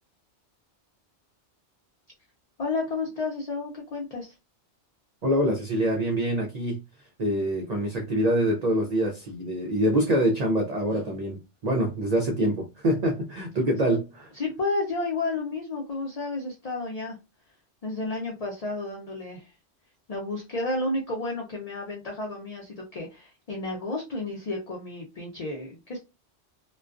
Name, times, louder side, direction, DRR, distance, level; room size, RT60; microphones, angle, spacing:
voice 1, 2.6-4.3 14.3-17.2 17.8-19.5 20.1-26.0, left 2 dB, 45° left, 0.5 m, -31 dB
voice 2, 5.2-6.8 7.2-14.3, equal, 55° right, 0.4 m, -25 dB
2.3 x 2.2 x 2.3 m
omnidirectional pair, 1.2 m